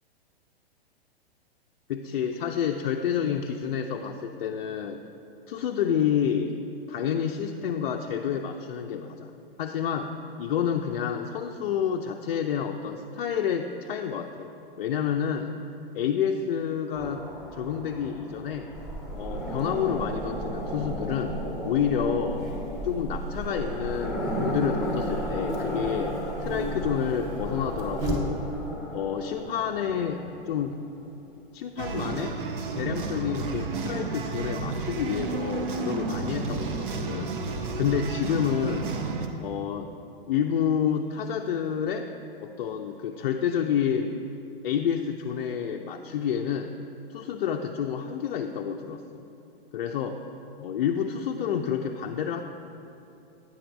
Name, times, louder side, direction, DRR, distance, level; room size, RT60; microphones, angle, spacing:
voice 1, 1.9-5.0 5.5-6.6 6.9-9.3 9.6-10.1 10.4-14.5 14.8-15.5 15.9-17.2 17.5-18.7 19.2-21.4 21.6-22.4 22.8-28.4 28.9-30.7 31.5-32.4 32.7-37.3 37.8-38.9 39.4-39.9 40.3-42.1 42.4-44.2 44.6-46.7 47.1-49.2 49.7-50.2 50.6-52.4, left 8 dB, 55° left, 3 dB, 0.4 m, -29 dB
sound 1, 16.9-30.8, equal, 5° right, 1.1 m, -35 dB
Buzz, 18.7-28.7, right 1 dB, 40° right, 1.4 m, -36 dB
sound 2, 31.8-39.3, right 4 dB, 60° right, 0.7 m, -31 dB
9.0 x 4.4 x 5.1 m, 2.8 s
hypercardioid pair, 115°, 30 cm